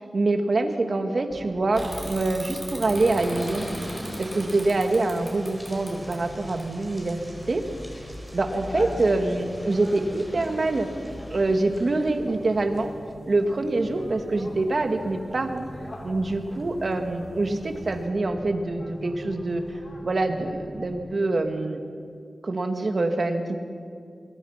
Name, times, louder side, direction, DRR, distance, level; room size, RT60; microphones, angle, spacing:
voice 1, 0.0-7.2 7.5-7.6 8.3-10.9 11.3-12.9 13.3-15.7 16.0-21.8 22.4-23.6, right 2 dB, 55° right, 6 dB, 2.2 m, -25 dB
sound 1, 1.3-20.9, left 1 dB, 60° left, 5.0 m, -43 dB
Bicycle / Mechanisms, 1.7-7.2, right 1 dB, 20° right, 5.5 m, -40 dB
sound 2, 2.8-17.1 17.6-17.7 17.9-18.0, equal, 5° right, 5.2 m, -43 dB
25.0 x 22.0 x 5.9 m, 2.3 s
wide cardioid pair, 80°, 0 cm